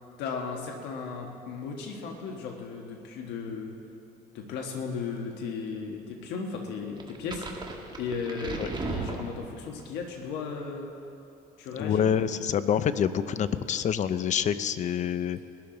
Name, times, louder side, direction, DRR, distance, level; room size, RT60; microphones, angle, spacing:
voice 1, 0.2-3.8 4.3-7.7 8.0-10.9 11.6-12.1, left 5 dB, 90° left, 1 dB, 1.4 m, -36 dB
sound 1, 7.0-9.9, right 3 dB, 25° right, 1.5 m, -36 dB
voice 2, 11.8-15.4, left 8 dB, 45° left, 13 dB, 0.6 m, -27 dB
21.0 x 12.5 x 3.9 m, 2.7 s
cardioid pair, 110°, 17 cm